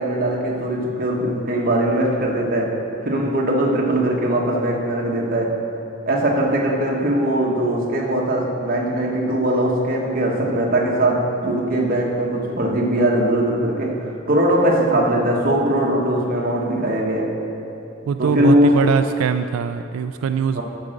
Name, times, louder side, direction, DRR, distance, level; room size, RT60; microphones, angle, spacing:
voice 1, 0.0-2.8 3.0-5.5 6.0-17.3 18.2-18.8 20.5-20.6, right 1 dB, 45° right, -1 dB, 1.2 m, -20 dB
voice 2, 18.1-20.6, right 6 dB, 90° right, 10 dB, 0.3 m, -22 dB
12.0 x 4.9 x 6.5 m, 2.9 s
head